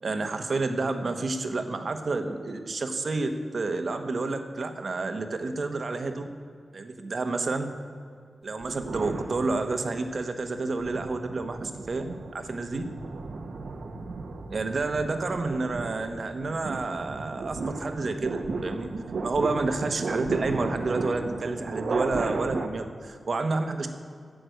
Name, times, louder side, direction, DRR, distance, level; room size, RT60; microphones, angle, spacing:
voice 1, 0.0-6.3 6.7-7.7 8.4-12.8 14.5-18.9 19.2-23.9, right 3 dB, 55° right, 7 dB, 1.1 m, -30 dB
sound 1, 8.6-10.0 10.6-22.7, right 3 dB, 80° right, 1.2 m, -35 dB
11.0 x 7.9 x 9.3 m, 2.2 s
wide cardioid pair, 155°, 0 cm